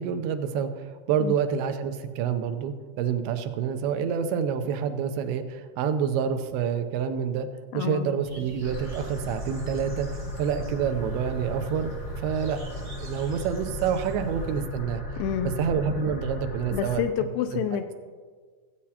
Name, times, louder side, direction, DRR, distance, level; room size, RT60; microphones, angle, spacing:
voice 1, 0.0-7.5 7.7-10.1 10.4-15.0 15.4-17.3, right 7 dB, 90° right, 8 dB, 2.6 m, -28 dB
voice 2, 7.7-8.1 15.2-15.5 16.7-18.0, left 9 dB, 80° left, 7 dB, 2.2 m, -28 dB
sound 1, 8.2-14.7, right 1 dB, 40° right, 0.8 m, -45 dB
sound 2, 8.6-17.0, equal, 60° left, 1.0 m, -35 dB
16.0 x 8.5 x 2.8 m, 1.5 s
omnidirectional pair, 4.3 m